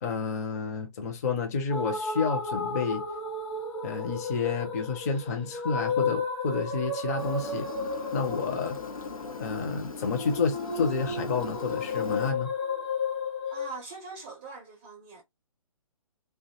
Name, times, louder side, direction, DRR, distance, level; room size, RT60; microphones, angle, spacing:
voice 1, 0.0-3.0 3.8-7.7 8.1-8.8 9.4-12.5, left 5 dB, 25° left, 0.5 m, -30 dB
sound 1, 1.7-13.8, left 3 dB, 50° left, 1.1 m, -33 dB
Engine, 7.2-12.3, left 4 dB, 70° left, 0.7 m, -41 dB
voice 2, 13.5-15.2, right 4 dB, 15° right, 0.4 m, -42 dB
2.5 x 2.2 x 2.6 m
figure-of-eight pair, 135°, 19 cm